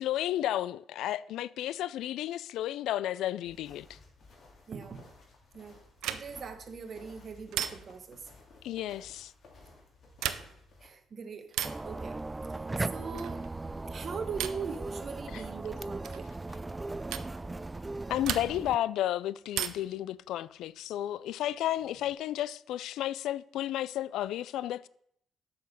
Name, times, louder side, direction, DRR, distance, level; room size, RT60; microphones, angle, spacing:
voice 1, 0.0-4.0 8.6-9.3 15.3-15.4 18.1-24.9, left 13 dB, 85° left, 0.3 m, -32 dB
sound 1, 3.4-10.9, left 3 dB, 55° left, 2.7 m, -56 dB
voice 2, 4.7-5.1 5.5-5.8 6.1-8.3 10.8-11.6 11.8-13.5 13.8-16.3, right 5 dB, 50° right, 1.1 m, -41 dB
sound 2, 6.0-6.5 7.5-8.1 10.1-10.7 11.5-11.9 13.1-13.5 14.4-14.7 16.0-16.3 17.1-17.3 18.2-18.8 19.5-20.0 21.5-22.1, right 11 dB, 90° right, 0.6 m, -36 dB
sound 3, 11.6-18.8, right 2 dB, 20° right, 0.4 m, -38 dB
7.7 x 5.8 x 6.6 m
cardioid pair, 90°, 0 cm